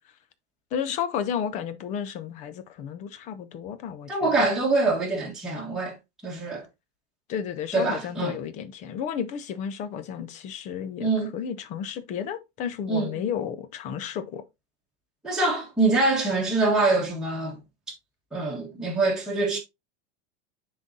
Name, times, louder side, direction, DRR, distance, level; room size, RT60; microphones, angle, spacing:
voice 1, 0.7-4.3 7.3-14.4, left 8 dB, 25° left, 0.5 m, -32 dB
voice 2, 4.1-6.0 6.2-6.6 7.7-8.4 11.0-11.3 12.9-13.2 15.2-17.6 18.3-19.6, right 3 dB, ahead, 1.4 m, -24 dB
9.6 x 3.9 x 2.6 m
supercardioid pair, 175°, 31 cm